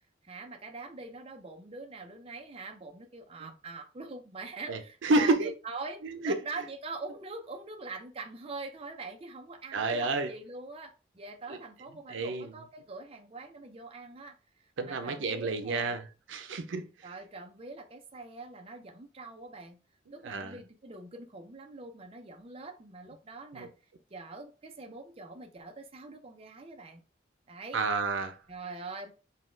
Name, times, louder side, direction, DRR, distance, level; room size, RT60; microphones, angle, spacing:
voice 1, 0.2-16.0 17.0-19.8 20.1-23.7 24.1-27.0 27.5-27.8 28.5-29.1, right 3 dB, 30° right, 0.6 m, -44 dB
voice 2, 4.7-5.5 6.0-6.4 9.7-10.3 11.5-11.6 12.1-12.5 14.8-16.0 16.3-16.9 20.2-20.6 23.5-23.7 27.7-28.4, right 3 dB, 90° right, 0.5 m, -30 dB
4.1 x 2.2 x 3.7 m
head